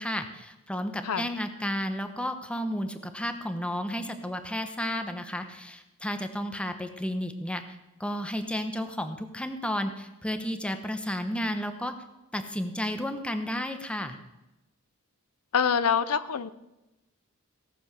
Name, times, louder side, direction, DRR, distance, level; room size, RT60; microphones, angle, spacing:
voice 1, 0.0-12.0 12.3-14.2, equal, 5° left, 7 dB, 1.0 m, -32 dB
voice 2, 15.5-16.5, left 7 dB, 80° left, 14 dB, 0.6 m, -25 dB
17.5 x 7.1 x 6.9 m, 0.96 s
head